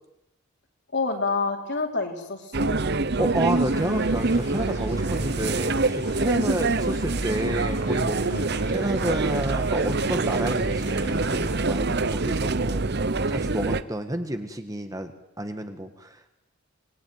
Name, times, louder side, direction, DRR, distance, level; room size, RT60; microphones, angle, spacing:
voice 1, 0.9-2.9 6.3-6.6 8.3-8.6 12.0-12.2, left 3 dB, 50° left, 3 dB, 3.9 m, -29 dB
sound 1, 2.5-13.8, right 3 dB, 50° right, 0.9 m, -25 dB
voice 2, 3.2-12.8 13.3-15.1 15.4-16.3, right 1 dB, 15° right, 7 dB, 1.5 m, -30 dB
sound 2, 3.6-11.6, left 4 dB, 35° left, 1.6 m, -45 dB
26.0 x 21.0 x 9.5 m, 0.90 s
head